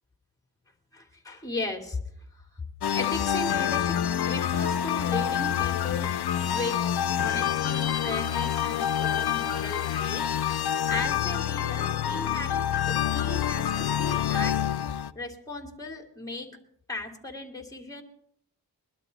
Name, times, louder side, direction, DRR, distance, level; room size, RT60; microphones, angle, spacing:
voice 1, 0.9-2.0 2.9-4.0 4.2-6.1 6.4-6.8 7.2-10.3 10.6-12.6 12.9-14.6 15.1-16.5 16.9-18.0, left 2 dB, 10° left, 3 dB, 2.5 m, -36 dB
sound 1, 2.8-15.1, left 10 dB, 75° left, 0.6 m, -27 dB
21.5 x 12.0 x 4.0 m, 0.69 s
wide cardioid pair, 80°, 39 cm